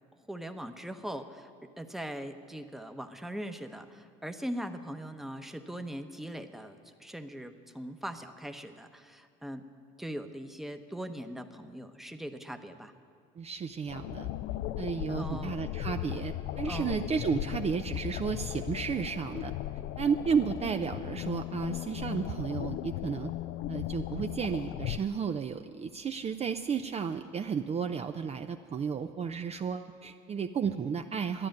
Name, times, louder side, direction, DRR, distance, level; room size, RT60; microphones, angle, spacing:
voice 1, 0.3-1.5 1.8-9.6 10.0-12.9 15.1-15.6 16.7-17.0, right 1 dB, ahead, 7 dB, 0.9 m, -40 dB
voice 2, 13.4-14.3 14.8-19.5 20.0-23.3 23.7-31.5, right 6 dB, 30° right, 7 dB, 0.5 m, -33 dB
sound 1, 13.9-25.0, left 13 dB, 65° left, 0.4 m, -37 dB
12.0 x 10.0 x 8.8 m, 2.2 s
supercardioid pair, 80°, 20 cm